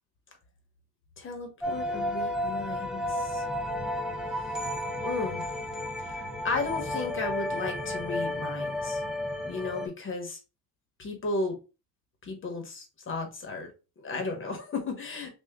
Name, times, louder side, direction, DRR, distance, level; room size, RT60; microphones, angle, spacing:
voice 1, 1.2-3.4 5.0-5.5 6.0-9.0 9.5-10.4 11.0-11.6 12.2-13.7 14.0-15.3, left 3 dB, 35° left, 3 dB, 1.1 m, -34 dB
sound 1, 1.6-9.9, left 1 dB, ahead, 0.5 m, -32 dB
3.4 x 2.5 x 3.5 m, 0.30 s
cardioid pair, 130°, 34 cm